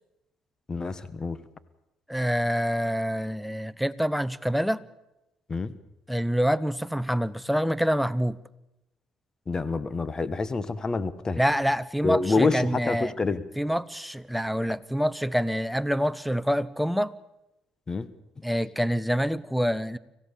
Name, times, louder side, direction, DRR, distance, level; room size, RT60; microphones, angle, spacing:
voice 1, 0.7-1.4 5.5-5.7 9.5-11.4 12.0-13.4 17.9-18.1, left 3 dB, 30° left, 15 dB, 1.4 m, -27 dB
voice 2, 2.1-4.8 6.1-8.4 11.4-13.1 13.6-17.1 18.4-20.0, equal, ahead, 15 dB, 1.0 m, -26 dB
26.0 x 16.0 x 7.0 m, 0.90 s
supercardioid pair, 65°, 2 cm